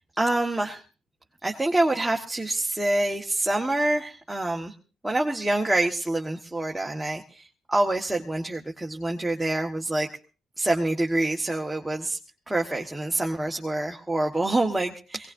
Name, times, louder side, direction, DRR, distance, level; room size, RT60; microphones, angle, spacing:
voice 1, 0.2-0.8 1.4-4.7 5.0-10.1 10.6-12.2 12.5-15.3, right 2 dB, 10° right, 1 dB, 1.5 m, -26 dB
22.0 x 19.0 x 2.7 m, 0.36 s
cardioid pair, 90°, 0 cm